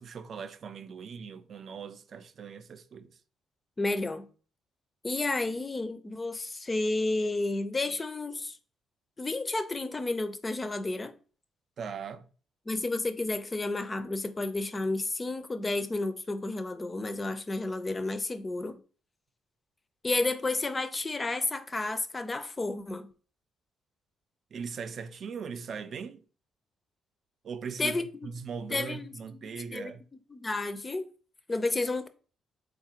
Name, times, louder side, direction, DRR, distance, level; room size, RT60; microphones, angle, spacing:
voice 1, 0.0-3.2 11.8-12.3 24.5-26.2 27.4-28.0 28.2-30.0, right 6 dB, 55° right, 0.3 m, -39 dB
voice 2, 3.8-4.3 5.0-8.6 9.2-11.1 12.7-18.8 20.0-23.1 27.8-28.3 28.7-31.1 31.5-32.1, left 2 dB, 25° left, 0.4 m, -31 dB
3.7 x 2.4 x 2.8 m
cardioid pair, 90°, 0 cm